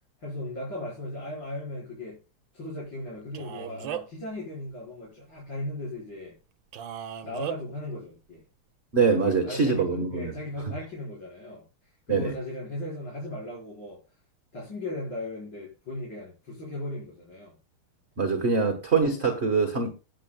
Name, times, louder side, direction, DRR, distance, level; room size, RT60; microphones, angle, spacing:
voice 1, 0.2-2.2 2.5-6.4 7.2-8.4 9.2-14.0 14.5-17.6, left 1 dB, 55° left, 5.5 m, -37 dB
Male speech man speaking, 3.3-4.2 6.7-7.6, right 10 dB, 65° right, 1.6 m, -36 dB
voice 2, 8.9-10.3 12.1-12.3 18.2-19.9, right 4 dB, 35° right, 1.5 m, -24 dB
20.0 x 8.0 x 2.3 m
omnidirectional pair, 2.4 m